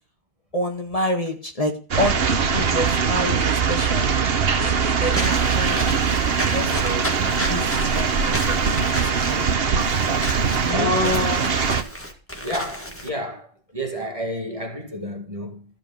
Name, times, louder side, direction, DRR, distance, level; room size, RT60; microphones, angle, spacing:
voice 1, 0.5-4.2 4.6-5.8 6.5-7.2 7.5-8.7 8.9-9.7 10.6-11.3, left 1 dB, 35° left, 2.2 m, -29 dB
sound 1, 1.9-11.8, right 6 dB, 65° right, 1.2 m, -22 dB
Walk footsteps / Squeak, 5.1-13.1, equal, 10° left, 2.0 m, -32 dB
voice 2, 10.7-11.6 12.4-15.7, left 1 dB, 30° right, 2.0 m, -29 dB
14.0 x 5.2 x 6.8 m
omnidirectional pair, 1.1 m